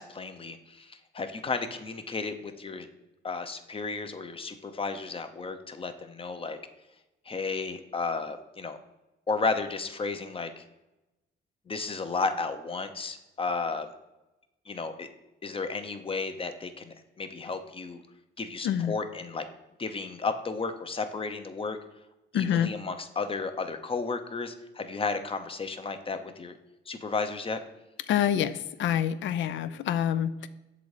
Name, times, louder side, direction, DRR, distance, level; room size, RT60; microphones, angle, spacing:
voice 1, 0.0-2.9 3.2-6.6 7.2-8.8 9.3-10.6 11.7-13.9 14.7-15.1 15.4-18.0 18.4-19.4 19.8-21.8 22.3-26.6 26.9-27.6, left 4 dB, 25° left, 8 dB, 0.7 m, -33 dB
voice 2, 22.3-22.7 28.1-30.5, left 9 dB, 70° left, 14 dB, 0.5 m, -27 dB
6.9 x 4.0 x 4.9 m, 1.0 s
cardioid pair, 90°, 20 cm